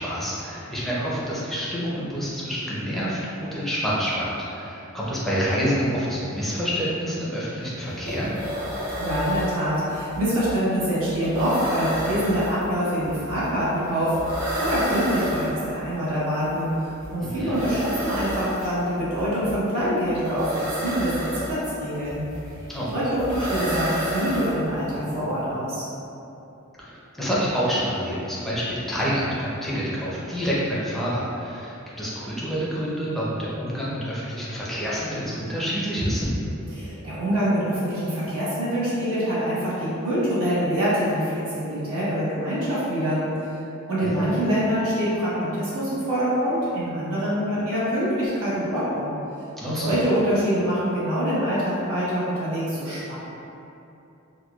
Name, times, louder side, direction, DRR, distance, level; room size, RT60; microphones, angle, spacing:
voice 1, 0.0-8.3 17.2-17.6 22.7-22.9 26.8-36.3 44.0-44.4 49.6-50.0, equal, ahead, -8 dB, 0.5 m, -27 dB
sound 1, 7.6-7.7 7.9-25.0, equal, 60° right, 1.0 m, -31 dB
voice 2, 9.0-16.7 17.1-22.2 22.9-25.8 36.7-43.6 43.9-49.1 49.6-53.1, equal, 85° right, -10 dB, 1.1 m, -25 dB
4.3 x 2.2 x 2.3 m, 2.8 s
head